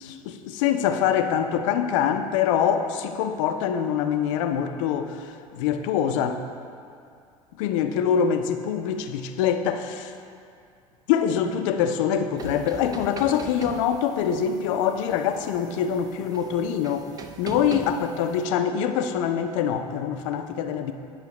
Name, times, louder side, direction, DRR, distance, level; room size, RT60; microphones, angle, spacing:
voice 1, 0.0-6.4 7.6-10.1 11.1-17.1 17.4-20.9, left 8 dB, 60° left, 8 dB, 0.5 m, -24 dB
sound 1, 12.4-18.4, right 5 dB, 20° right, 0.4 m, -41 dB
8.5 x 5.5 x 3.0 m, 2.4 s
figure-of-eight pair, 75°, 18 cm